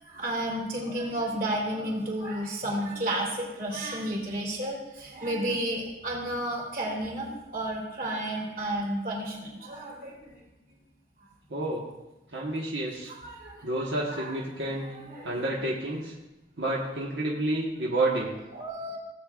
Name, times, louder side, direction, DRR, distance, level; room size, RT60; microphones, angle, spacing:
voice 1, 0.0-10.4 13.1-13.7 14.1-14.4 14.7-15.4 18.5-19.0, right 1 dB, 55° right, -4 dB, 3.3 m, -32 dB
voice 2, 11.5-11.8 12.3-13.1 13.6-14.9 15.2-16.1 16.6-18.3, right 2 dB, 85° right, -4 dB, 1.4 m, -29 dB
17.0 x 8.6 x 2.5 m, 0.99 s
head